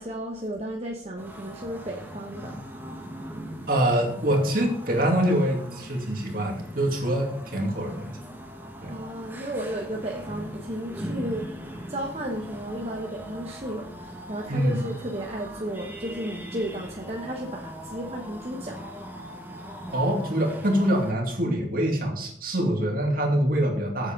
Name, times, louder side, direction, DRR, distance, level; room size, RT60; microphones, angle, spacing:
voice 1, 0.0-2.6 8.9-11.5 11.9-18.8, right 1 dB, 35° right, 0 dB, 1.2 m, -33 dB
sound 1, 1.2-21.1, equal, 10° right, 1.4 m, -40 dB
voice 2, 3.7-8.1 8.8-8.9 14.5-14.8 19.9-24.1, right 1 dB, 55° right, 2 dB, 2.5 m, -25 dB
8.4 x 8.1 x 5.3 m, 0.73 s
head